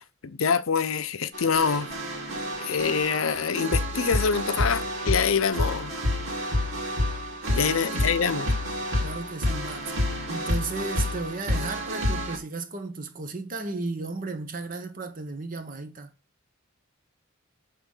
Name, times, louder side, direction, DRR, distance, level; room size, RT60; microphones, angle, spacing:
voice 1, 0.0-1.9 2.6-5.9 7.6-8.5, left 6 dB, 70° left, 0.6 m, -25 dB
sound 1, 1.3-12.4, left 1 dB, 65° right, 2.5 m, -29 dB
voice 2, 9.0-9.9 10.3-16.1, right 3 dB, 40° right, 1.0 m, -34 dB
8.2 x 3.8 x 5.5 m
head